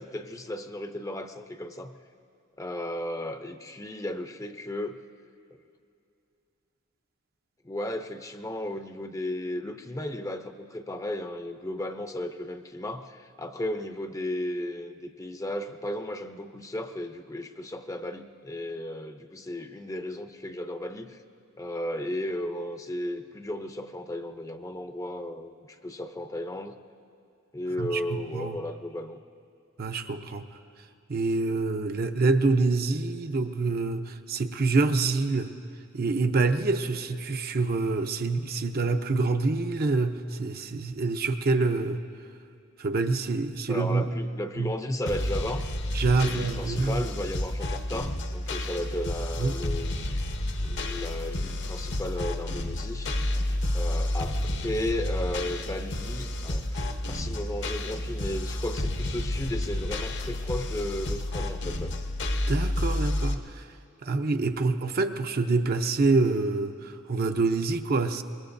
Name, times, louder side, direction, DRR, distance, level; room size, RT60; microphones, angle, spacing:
voice 1, 0.0-1.9 2.6-5.0 7.6-21.2 21.6-26.8 27.5-29.2 43.7-45.7 46.1-49.9 50.6-53.1 53.7-62.0, left 1 dB, 15° left, 7 dB, 0.6 m, -34 dB
voice 2, 27.8-28.6 29.8-30.5 31.1-35.5 35.9-42.0 42.8-44.1 44.6-44.8 45.9-47.0 49.4-49.5 62.5-63.6 64.0-68.2, right 3 dB, 50° right, 6 dB, 0.6 m, -26 dB
sound 1, 45.1-63.4, left 1 dB, 60° left, 1.0 m, -30 dB
25.0 x 21.5 x 2.6 m, 2.6 s
head